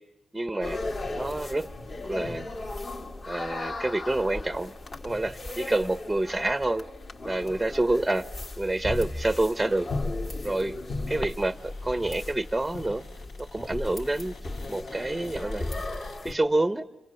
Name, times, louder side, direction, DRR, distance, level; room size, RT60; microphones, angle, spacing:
voice 1, 0.3-0.8 1.1-1.7 2.0-2.5 3.3-4.7 5.0-6.8 7.2-8.3 8.6-9.9 10.4-10.8 11.1-13.0 13.4-14.4 14.7-15.7 16.2-16.9, right 2 dB, 5° right, 12 dB, 0.9 m, -27 dB
sound 1, 0.6-16.3, left 2 dB, 40° left, 2.6 m, -36 dB
Cupboard open or close, 9.5-16.2, left 4 dB, 85° left, 4.6 m, -53 dB
29.5 x 26.0 x 7.0 m, 1.0 s
wide cardioid pair, 135°, 0 cm